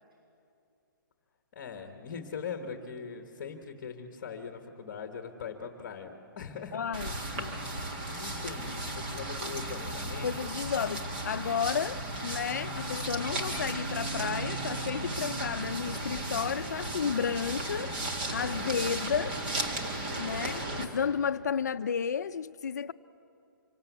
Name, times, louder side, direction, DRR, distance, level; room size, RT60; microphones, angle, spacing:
voice 1, 1.5-6.8 7.8-10.5, left 6 dB, 30° left, 1.5 m, -41 dB
voice 2, 6.7-7.6 10.2-17.9 18.3-19.4 20.2-22.9, left 7 dB, 50° left, 0.7 m, -32 dB
sound 1, 6.9-20.9, right 1 dB, 25° right, 1.9 m, -35 dB
25.5 x 24.0 x 8.3 m
hypercardioid pair, 180°, 12 cm